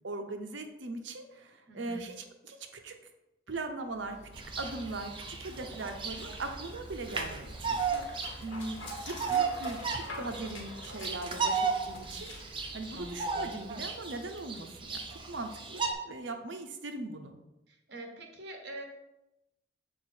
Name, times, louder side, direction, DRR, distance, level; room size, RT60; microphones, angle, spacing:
voice 1, 0.0-3.0 3.5-4.2 4.6-8.0 8.4-12.3 12.7-17.4, right 2 dB, 70° right, 6 dB, 0.7 m, -40 dB
voice 2, 1.7-2.1 12.9-13.5 17.7-18.8, right 1 dB, 55° right, 2 dB, 1.2 m, -45 dB
Dog, 3.8-13.8, left 2 dB, 80° left, 1.5 m, -48 dB
Bird vocalization bird call bird song, 4.3-15.9, right 5 dB, 25° right, 0.6 m, -35 dB
6.6 x 4.2 x 4.5 m, 0.94 s
head